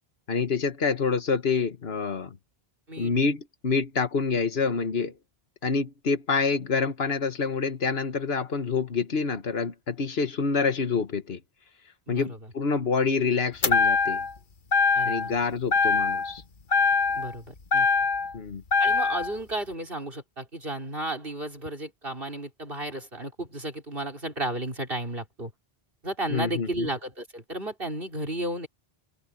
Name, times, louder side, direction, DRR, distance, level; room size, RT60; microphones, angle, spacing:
voice 1, 0.3-2.4 3.0-5.1 5.6-11.4 12.1-14.2 15.1-16.4 18.3-18.6 26.3-26.9, left 5 dB, 70° left, 1.6 m, -27 dB
voice 2, 12.1-12.4 14.9-15.3 17.1-17.9 18.8-25.5 26.0-28.7, right 1 dB, 60° right, 5.3 m, -33 dB
sound 1, 13.6-14.4 14.7-15.4 15.7-16.4 16.7-18.3 18.7-19.3, left 4 dB, 50° left, 1.5 m, -23 dB
open air
omnidirectional pair, 1.1 m